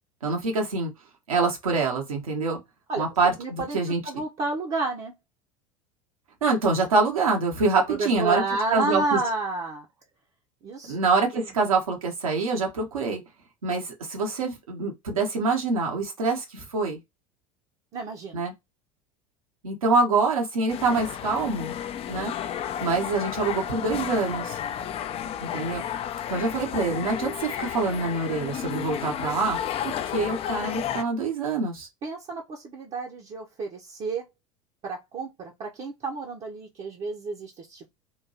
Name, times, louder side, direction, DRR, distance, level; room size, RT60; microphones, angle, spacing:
voice 1, 0.2-0.9 1.3-2.6 3.0-4.0 6.4-8.4 8.7-9.2 10.9-13.2 13.6-17.0 18.3-18.5 19.6-21.8 22.1-22.3 22.8-24.6 25.4-25.9 26.3-31.9, right 3 dB, 80° right, 1.3 m, -25 dB
voice 2, 3.4-3.8 4.0-5.1 7.9-9.9 10.6-11.0 11.3-11.5 17.9-18.4 32.0-34.3 34.8-37.9, right 3 dB, 40° right, 0.8 m, -31 dB
sound 1, 20.7-31.0, left 10 dB, 35° left, 0.4 m, -32 dB
3.7 x 2.6 x 2.8 m
figure-of-eight pair, 75°, 18 cm